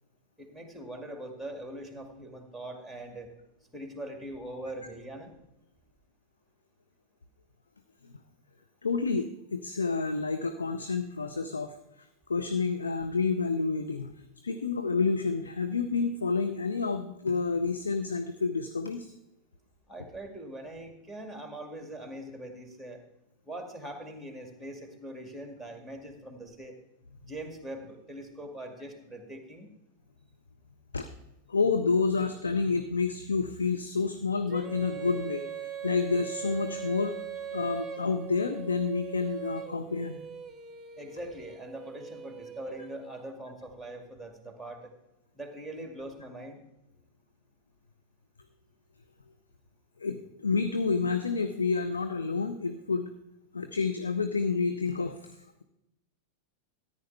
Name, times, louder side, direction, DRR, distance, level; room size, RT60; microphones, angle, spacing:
voice 1, 0.4-3.3 3.7-5.3 19.9-23.0 23.5-26.8 27.2-29.7 41.0-44.9 45.3-46.6, right 1 dB, 5° left, 3 dB, 2.2 m, -42 dB
voice 2, 8.8-14.1 14.4-19.1 30.9-31.1 31.5-37.1 37.5-40.2 50.0-53.1 53.5-55.6, left 4 dB, 75° left, 7 dB, 0.7 m, -29 dB
Female singing, 34.5-43.3, right 8 dB, 15° right, 1.1 m, -41 dB
14.0 x 9.9 x 3.4 m, 0.91 s
figure-of-eight pair, 90°, 0 cm